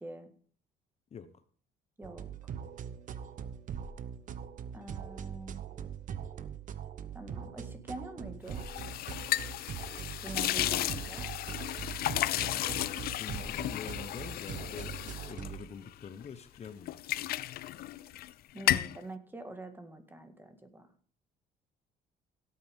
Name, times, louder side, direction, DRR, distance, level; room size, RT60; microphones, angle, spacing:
voice 1, 0.0-0.3 2.0-2.6 4.7-5.6 7.1-8.7 10.2-11.3 18.5-20.9, right 2 dB, 10° right, 7 dB, 1.8 m, -45 dB
sound 1, 2.0-15.6, right 8 dB, 50° right, 0.9 m, -42 dB
sound 2, 8.5-16.3 16.6-18.3 18.6-19.0, left 14 dB, 65° left, 0.5 m, -34 dB
voice 2, 10.6-11.0 12.3-17.3, left 6 dB, 40° left, 10 dB, 1.0 m, -46 dB
17.0 x 8.4 x 3.6 m, 0.44 s
cardioid pair, 110°, 17 cm